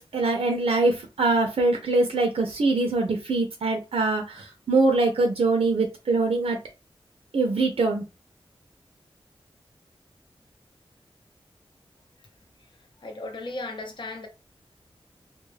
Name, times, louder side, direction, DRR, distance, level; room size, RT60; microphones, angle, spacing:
voice 1, 0.0-6.6 7.3-8.0, right 3 dB, 75° right, 0.5 m, -23 dB
voice 2, 13.0-14.3, left 2 dB, 55° left, 0.6 m, -35 dB
2.2 x 2.1 x 3.2 m
wide cardioid pair, 80°, 10 cm